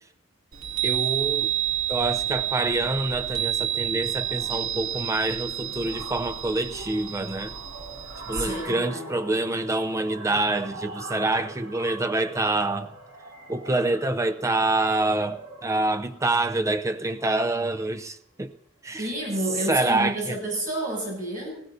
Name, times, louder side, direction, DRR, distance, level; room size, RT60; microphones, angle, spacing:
Chime, 0.5-8.7, right 11 dB, 85° right, 2.2 m, -29 dB
voice 1, 0.8-1.5 1.9-7.6 8.3-12.9 13.5-18.5 18.8-19.1 19.7-20.4, right 2 dB, 15° right, 0.5 m, -26 dB
sound 1, 2.1-2.3 2.6-2.8 3.1-18.0, right 2 dB, 65° right, 2.2 m, -43 dB
voice 2, 8.3-9.1 19.0-21.6, right 1 dB, 40° right, 6.9 m, -30 dB
19.5 x 16.0 x 2.7 m
head